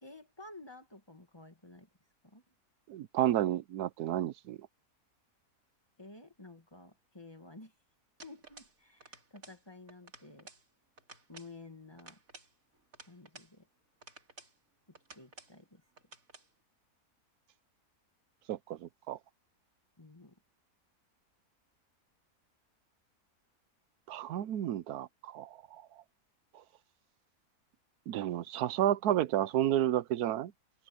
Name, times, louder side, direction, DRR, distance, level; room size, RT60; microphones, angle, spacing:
voice 1, 0.0-1.9 2.2-2.4 6.0-7.7 8.2-10.5 11.3-12.2 13.1-13.7 15.1-15.8 20.0-20.4, left 2 dB, 15° left, 2.1 m, -52 dB
voice 2, 2.9-4.6 18.5-19.2 24.1-25.8 28.1-30.5, right 12 dB, 90° right, 1.2 m, -31 dB
sound 1, 8.2-8.8 9.0-9.6 9.9-10.6 11.0-11.5 12.0-13.5 14.0-14.6 14.9-15.6 16.0-16.5, right 3 dB, 60° right, 3.6 m, -54 dB
omnidirectional pair, 1.6 m